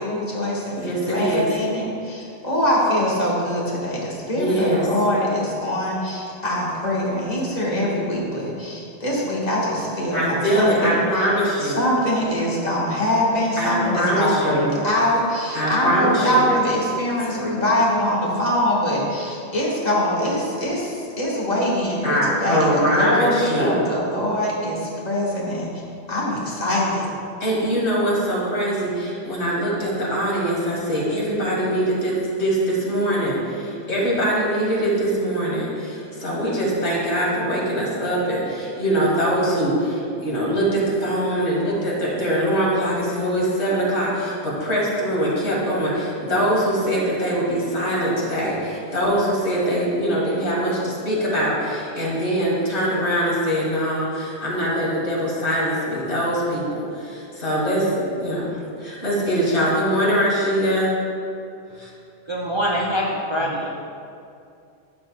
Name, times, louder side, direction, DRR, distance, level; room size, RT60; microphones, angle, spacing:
voice 1, 0.0-11.0 11.6-25.7 26.1-27.1, left 1 dB, 40° left, -5 dB, 1.5 m, -23 dB
voice 2, 0.8-1.5 4.3-4.9 10.1-11.8 13.6-14.6 15.5-16.5 17.4-17.5 22.0-23.8 27.4-60.9 61.8-61.9 63.4-63.6, equal, 80° left, -5 dB, 2.1 m, -22 dB
voice 3, 62.3-63.7, equal, 40° right, -4 dB, 0.4 m, -24 dB
12.5 x 5.2 x 2.2 m, 2.6 s
omnidirectional pair, 1.1 m